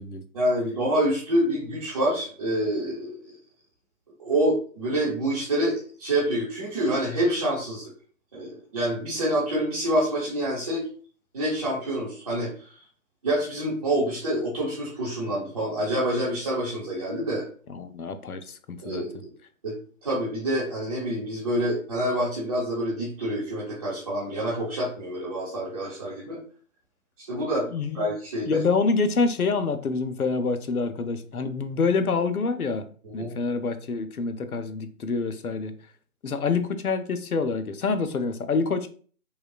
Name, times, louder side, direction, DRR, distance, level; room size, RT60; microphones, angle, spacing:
voice 1, 0.3-3.1 4.2-7.9 8.3-10.8 11.3-12.7 13.2-17.4 18.8-19.3 19.6-19.7 20.0-26.4 27.3-27.7 27.9-28.6 33.2-33.3, right 1 dB, 25° right, -9 dB, 0.9 m, -27 dB
voice 2, 17.7-19.0 27.7-28.1 28.5-32.9 33.1-35.7 36.2-38.9, left 4 dB, 75° left, 10 dB, 0.6 m, -26 dB
5.5 x 2.3 x 2.3 m, 0.43 s
figure-of-eight pair, 150°, 44 cm